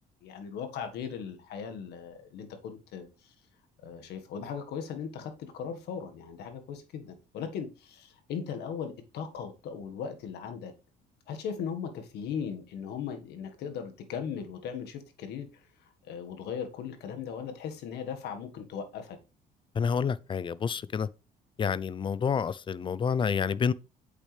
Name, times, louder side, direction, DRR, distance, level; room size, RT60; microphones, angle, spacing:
voice 1, 0.2-3.3 3.8-10.7 11.3-15.6 16.1-19.2, left 7 dB, 75° left, 1.6 m, -38 dB
voice 2, 19.7-21.1 21.6-23.7, left 6 dB, 30° left, 0.5 m, -28 dB
8.2 x 6.7 x 3.3 m
cardioid pair, 110°, 17 cm